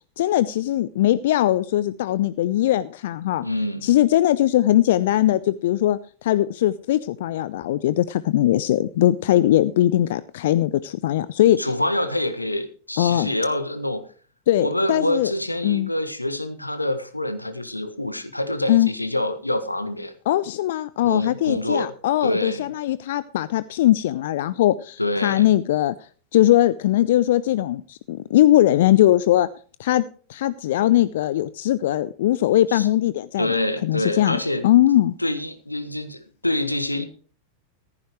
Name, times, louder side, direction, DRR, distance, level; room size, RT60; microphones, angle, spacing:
voice 1, 0.2-3.4 3.8-11.7 13.0-13.3 14.5-15.3 15.6-15.9 18.7-18.9 20.3-29.5 29.8-30.0 30.3-33.5 33.8-35.1, left 13 dB, 55° left, 17 dB, 0.5 m, -20 dB
voice 2, 3.4-3.9 11.6-14.0 14.6-20.1 21.0-21.9 22.2-22.7 25.0-25.4 32.7-32.9 33.4-34.7 35.2-37.0, left 1 dB, 85° left, 10 dB, 1.5 m, -26 dB
15.0 x 14.5 x 3.2 m, 0.40 s
figure-of-eight pair, 90°, 0 cm